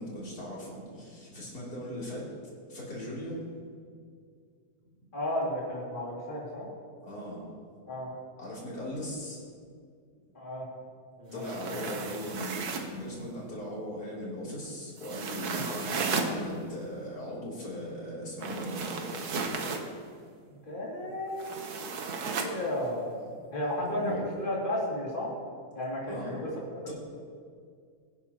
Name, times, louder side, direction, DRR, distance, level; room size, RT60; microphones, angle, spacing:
voice 1, 0.0-2.3 2.7-3.4 7.0-7.4 8.4-9.4 11.3-12.6 12.9-19.5 23.8-24.2 26.1-26.4 26.9-27.0, equal, 90° left, -6 dB, 3.9 m, -38 dB
voice 2, 5.1-6.7 7.9-8.1 10.3-10.7 11.2-11.4 11.7-11.8 20.5-21.7 22.4-23.2 23.5-25.3 25.7-26.5 26.8-26.9, left 1 dB, 30° left, -5 dB, 2.8 m, -33 dB
sound 1, 11.3-13.0 15.0-16.4 18.4-19.9 21.4-22.6, right 5 dB, 90° right, 1.6 m, -34 dB
22.5 x 10.0 x 3.0 m, 2.2 s
omnidirectional pair, 1.6 m